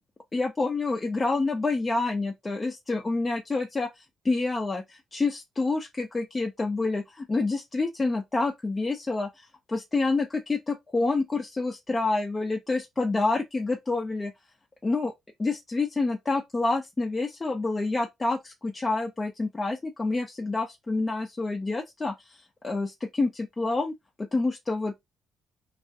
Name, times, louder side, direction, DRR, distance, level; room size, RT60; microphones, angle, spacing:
voice 1, 0.3-14.3 14.8-15.1 15.4-23.9 24.2-24.9, left 3 dB, 25° left, 0.4 m, -28 dB
2.3 x 2.0 x 2.6 m
cardioid pair, 90°, 0 cm